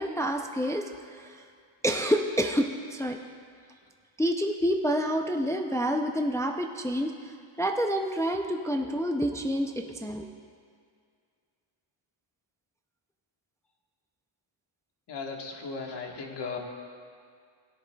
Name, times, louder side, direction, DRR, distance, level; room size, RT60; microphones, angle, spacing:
voice 1, 0.0-1.4 1.8-3.2 4.2-10.2, equal, 5° left, 3 dB, 0.4 m, -28 dB
voice 2, 15.1-16.6, left 4 dB, 55° left, 1 dB, 1.5 m, -37 dB
17.0 x 10.5 x 2.3 m, 2.2 s
cardioid pair, 120°, 49 cm